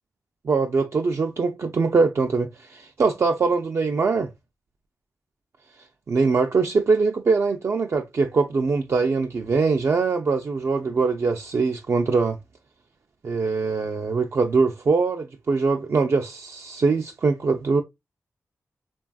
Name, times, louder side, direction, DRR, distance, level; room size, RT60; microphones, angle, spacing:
voice 1, 0.4-4.3 6.1-12.4 13.2-17.8, right 4 dB, 55° right, 0.3 m, -22 dB
3.2 x 2.3 x 2.2 m
wide cardioid pair, 80°, 6 cm